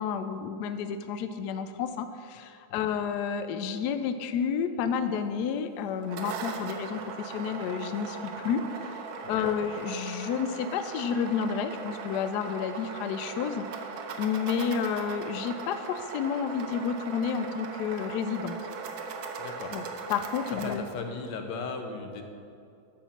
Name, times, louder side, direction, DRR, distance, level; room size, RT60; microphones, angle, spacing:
voice 1, 0.0-9.0 9.3-13.7 14.2-18.6 19.7-19.8 20.1-20.8, left 7 dB, 85° left, 9 dB, 0.9 m, -30 dB
sound 1, 5.9-20.8, right 4 dB, 80° right, 1.6 m, -39 dB
voice 2, 19.4-19.8 20.5-22.2, left 4 dB, 60° left, 5 dB, 1.4 m, -37 dB
10.0 x 5.0 x 7.0 m, 2.5 s
omnidirectional pair, 2.3 m